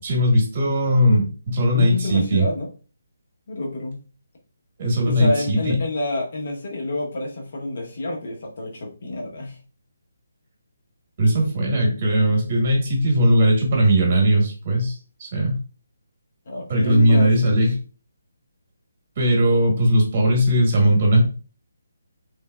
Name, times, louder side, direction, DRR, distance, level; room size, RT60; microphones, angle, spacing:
voice 1, 0.0-2.5 4.8-5.7 11.2-15.6 16.7-17.8 19.2-21.2, equal, 25° right, -1 dB, 1.2 m, -19 dB
voice 2, 1.7-2.7 3.5-4.0 5.0-9.6 16.5-17.3, left 1 dB, 40° left, 0 dB, 0.9 m, -28 dB
3.4 x 3.3 x 2.3 m, 0.37 s
hypercardioid pair, 175°, 0 cm